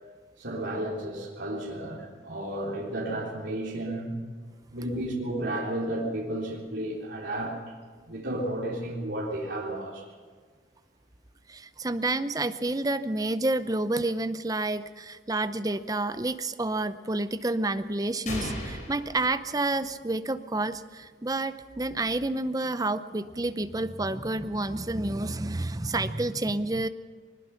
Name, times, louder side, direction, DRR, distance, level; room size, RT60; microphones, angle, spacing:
voice 1, 0.4-4.2 4.7-7.6 8.1-10.0, right 1 dB, 70° right, -5 dB, 3.6 m, -32 dB
voice 2, 11.5-26.9, right 2 dB, 20° right, 11 dB, 0.6 m, -29 dB
sound 1, 18.3-20.2, left 1 dB, 40° left, 5.1 m, -37 dB
22.0 x 20.5 x 5.9 m, 1.5 s
head